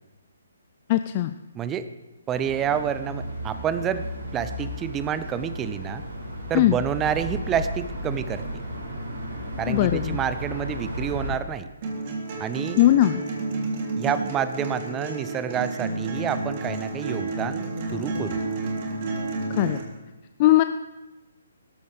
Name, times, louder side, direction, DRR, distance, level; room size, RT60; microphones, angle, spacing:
voice 1, 0.9-1.3 6.5-6.8 9.7-10.2 12.8-13.2 19.5-19.8 20.4-20.6, left 14 dB, 30° left, 10 dB, 0.4 m, -19 dB
voice 2, 1.5-1.9 2.3-4.0 4.3-6.0 6.5-8.4 9.6-11.7 12.4-12.9 14.0-18.4, right 8 dB, 15° right, 12 dB, 0.7 m, -28 dB
sound 1, 2.3-11.4, equal, 60° right, 6.4 m, -34 dB
sound 2, 11.8-19.8, right 2 dB, 35° right, 3.2 m, -30 dB
24.0 x 13.5 x 3.4 m, 1.1 s
figure-of-eight pair, 135°, 0 cm